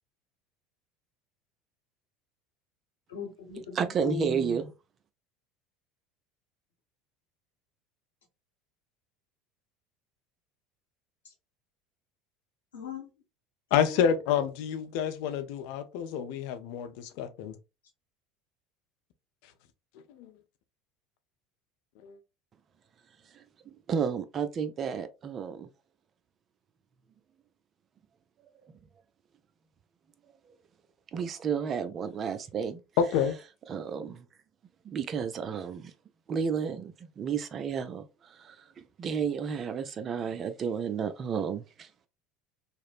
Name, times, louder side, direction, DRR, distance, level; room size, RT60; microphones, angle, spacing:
voice 1, 3.1-4.6 12.7-13.1 13.7-14.0, left 7 dB, 85° left, 0.9 m, -39 dB
voice 2, 3.7-4.7 23.3-23.4 23.9-25.7 31.1-32.8 33.7-34.3 34.8-35.9 36.3-38.6 39.0-42.1, right 7 dB, 40° right, 0.4 m, -32 dB
voice 3, 13.7-17.6 20.1-20.3 22.0-22.2 33.0-33.4, left 8 dB, 65° left, 0.4 m, -28 dB
2.9 x 2.0 x 2.4 m
hypercardioid pair, 75°, 0 cm